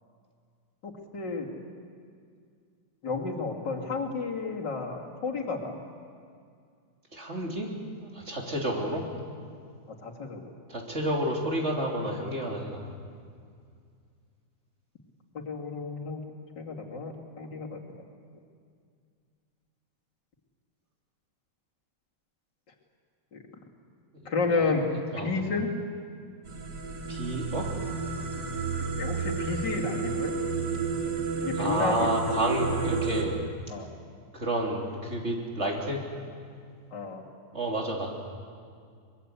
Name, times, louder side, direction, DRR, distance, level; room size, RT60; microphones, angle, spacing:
voice 1, 0.8-1.5 3.0-5.7 8.7-8.8 9.9-10.5 15.5-16.2 16.6-17.8 23.3-23.4 24.2-24.9 25.2-25.7 29.0-30.3 31.4-32.0 33.7-33.9 36.9-37.2, left 4 dB, 85° left, -1 dB, 3.2 m, -31 dB
voice 2, 7.1-7.7 8.0-9.1 10.7-12.9 24.5-25.3 27.1-27.7 31.6-33.4 34.3-36.0 37.5-38.2, right 1 dB, 40° right, -1 dB, 3.5 m, -30 dB
sound 1, 26.5-33.2, right 5 dB, 70° right, 2.9 m, -31 dB
24.0 x 21.5 x 8.3 m, 2.2 s
omnidirectional pair, 1.9 m